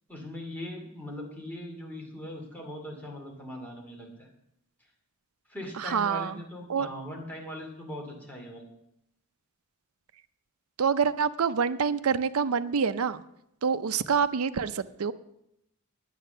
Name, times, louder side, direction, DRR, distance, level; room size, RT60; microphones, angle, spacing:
voice 1, 0.1-4.3 5.5-8.6, left 1 dB, 10° left, -1 dB, 2.4 m, -40 dB
voice 2, 5.8-6.4 6.7-6.9 10.8-13.2 13.6-15.1, right 6 dB, 80° right, 14 dB, 0.5 m, -26 dB
9.8 x 9.5 x 6.7 m, 0.80 s
head